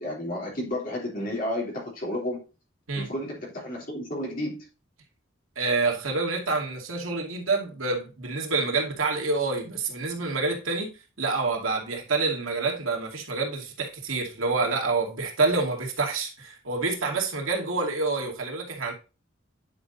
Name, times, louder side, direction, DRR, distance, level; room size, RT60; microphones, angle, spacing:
voice 1, 0.0-2.4 2.9-4.7, left 1 dB, 45° left, 3.2 m, -32 dB
voice 2, 5.6-18.9, right 3 dB, 90° right, 2.4 m, -27 dB
9.9 x 5.2 x 2.7 m
head